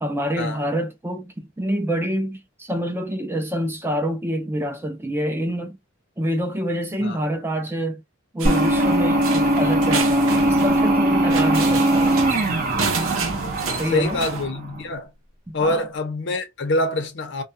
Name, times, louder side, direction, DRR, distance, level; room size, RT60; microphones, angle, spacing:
voice 1, 0.0-5.8 6.2-8.0 8.3-12.2 13.7-14.2 15.5-15.9, equal, 10° right, 0.4 m, -26 dB
sound 1, 8.4-14.8, right 1 dB, 45° right, 0.7 m, -20 dB
sound 2, 8.4-14.5, right 4 dB, 80° right, 0.7 m, -30 dB
voice 2, 13.9-15.1 15.5-17.4, left 1 dB, 60° left, 0.7 m, -25 dB
2.3 x 2.2 x 2.6 m
head